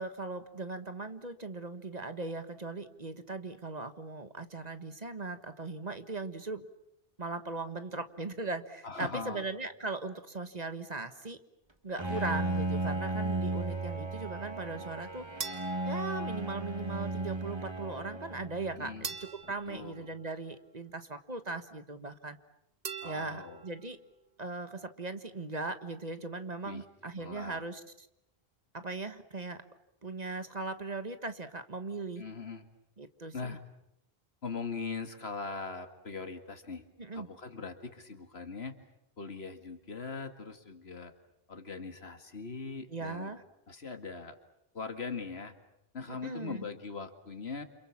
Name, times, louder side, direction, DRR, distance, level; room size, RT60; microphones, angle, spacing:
voice 1, 0.0-6.7 7.2-11.4 11.8-15.2 15.8-22.4 23.0-24.0 24.4-28.1 28.7-29.6 30.0-32.2 33.0-33.6 37.0-37.3 42.9-43.4 46.1-46.7, right 3 dB, 40° right, 9 dB, 1.5 m, -39 dB
voice 2, 8.8-9.4 12.0-12.3 18.8-19.1 19.7-20.1 23.0-23.6 26.6-26.8 27.2-27.6 32.2-32.6 33.3-33.6 34.4-36.9 37.1-38.7 39.2-41.1 41.5-43.3 43.7-44.4 44.7-45.5 45.9-47.6, left 4 dB, 80° left, 7 dB, 2.4 m, -40 dB
Bowed string instrument, 12.0-19.1, right 2 dB, 25° right, 1.8 m, -35 dB
sound 1, 15.4-16.9 19.0-20.9 22.8-24.0, right 5 dB, 60° right, 1.5 m, -44 dB
29.0 x 27.5 x 7.3 m, 0.82 s
omnidirectional pair, 1.1 m